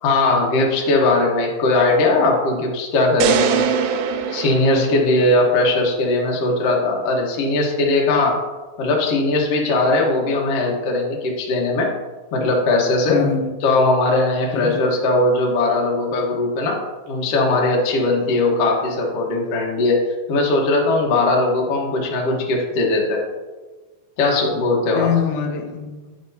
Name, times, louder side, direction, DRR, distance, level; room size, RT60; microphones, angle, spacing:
voice 1, 0.0-3.6 4.3-8.4 8.8-11.9 12.3-13.2 13.6-16.8 17.1-20.0 20.3-23.2 24.2-25.1, left 2 dB, 60° left, 1.7 m, -19 dB
sound 1, 3.2-5.5, right 7 dB, 80° right, 2.2 m, -22 dB
voice 2, 13.1-13.6 14.5-14.9 24.9-26.2, left 7 dB, 85° left, 2.4 m, -24 dB
9.0 x 6.1 x 2.7 m
omnidirectional pair, 4.1 m